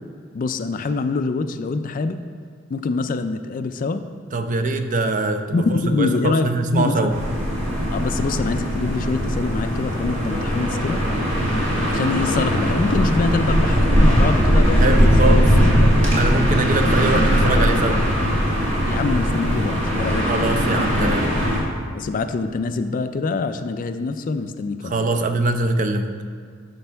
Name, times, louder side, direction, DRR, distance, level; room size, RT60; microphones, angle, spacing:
voice 1, 0.3-2.3 2.7-4.1 5.5-6.5 6.7-7.1 7.9-11.0 11.9-15.9 18.9-20.3 21.9-25.0, left 3 dB, 45° left, 10 dB, 0.4 m, -24 dB
voice 2, 4.3-7.1 14.8-15.6 16.1-18.0 20.3-21.3 24.8-26.1, right 2 dB, 40° right, 7 dB, 0.5 m, -23 dB
sound 1, 7.1-21.6, equal, 70° right, 1.9 m, -19 dB
11.5 x 5.3 x 3.4 m, 2.1 s
head